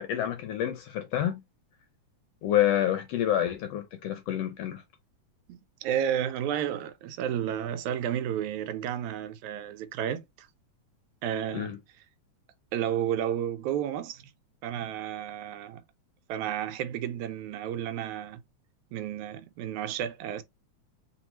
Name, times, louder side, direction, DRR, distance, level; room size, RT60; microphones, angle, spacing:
voice 1, 0.0-1.4 2.4-4.8 11.5-11.8, left 11 dB, 75° left, 1.5 m, -28 dB
voice 2, 5.5-10.5 11.2-11.8 12.7-14.3 14.6-15.8 16.3-18.4 18.9-20.4, right 10 dB, 85° right, 2.0 m, -32 dB
4.3 x 3.8 x 3.0 m
omnidirectional pair, 3.4 m